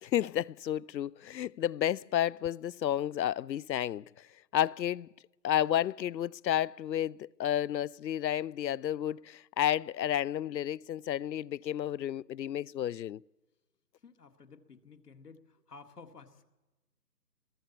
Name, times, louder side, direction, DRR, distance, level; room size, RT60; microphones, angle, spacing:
voice 1, 0.0-4.3 4.5-5.1 5.4-13.2, left 11 dB, 85° left, 0.6 m, -31 dB
voice 2, 14.0-16.4, left 4 dB, 65° left, 2.2 m, -53 dB
29.0 x 22.5 x 4.4 m
hypercardioid pair, 175°, 50 cm